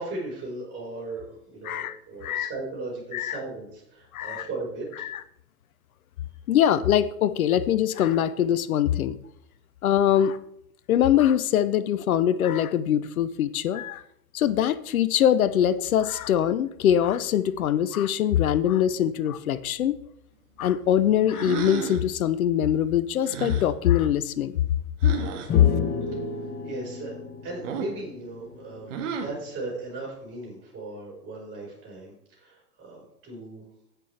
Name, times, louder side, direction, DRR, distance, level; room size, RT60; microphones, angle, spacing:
voice 1, 0.0-5.1 26.6-27.1 27.4-33.6, right 2 dB, 20° right, -3 dB, 4.5 m, -37 dB
voice 2, 1.6-2.0 2.2-2.5 3.1-3.4 4.1-4.5 5.0-5.2 6.5-9.2 9.8-10.4 10.9-14.0 14.3-20.0 20.6-24.5 25.5-25.7, left 10 dB, 60° left, 16 dB, 0.7 m, -23 dB
sound 1, 21.3-22.1 23.2-23.7 25.0-25.5 27.6-28.0 28.9-29.4, right 6 dB, 45° right, 1.9 m, -32 dB
sound 2, 25.5-29.1, left 4 dB, 20° left, 1.1 m, -32 dB
16.5 x 5.9 x 3.4 m, 0.75 s
figure-of-eight pair, 110°, 49 cm